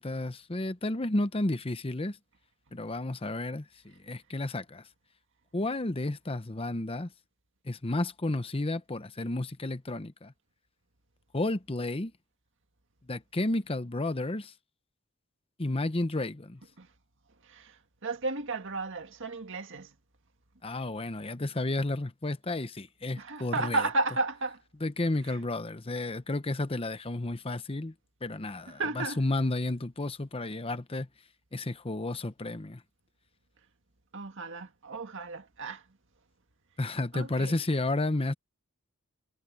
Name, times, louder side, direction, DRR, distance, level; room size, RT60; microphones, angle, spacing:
voice 1, 0.0-2.2 2.7-4.8 5.5-7.1 7.6-10.3 11.3-12.1 13.1-14.5 15.6-16.6 20.6-23.8 24.8-27.9 28.2-31.1 31.5-32.8 36.8-38.3, left 2 dB, 25° left, 0.8 m, -32 dB
voice 2, 17.4-19.9 23.2-24.6 25.3-25.4 28.8-29.2 34.1-35.8 37.1-37.6, right 3 dB, 55° right, 1.9 m, -33 dB
head